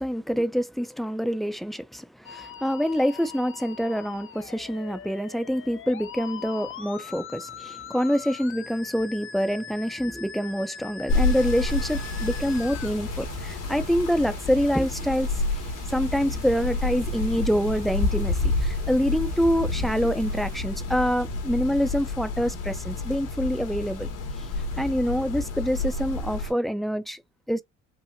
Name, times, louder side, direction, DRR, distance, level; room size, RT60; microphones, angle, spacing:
voice 1, 0.0-15.4 15.9-24.1 24.4-24.5 24.8-27.2 27.5-27.6, equal, ahead, 0.5 m, -26 dB
Musical instrument, 2.2-12.9, left 7 dB, 45° left, 0.6 m, -41 dB
sound 1, 11.1-26.5, left 3 dB, 90° left, 2.0 m, -29 dB
sound 2, 11.7-20.6, right 6 dB, 65° right, 1.7 m, -47 dB
5.6 x 2.1 x 2.6 m
cardioid pair, 90°, 30 cm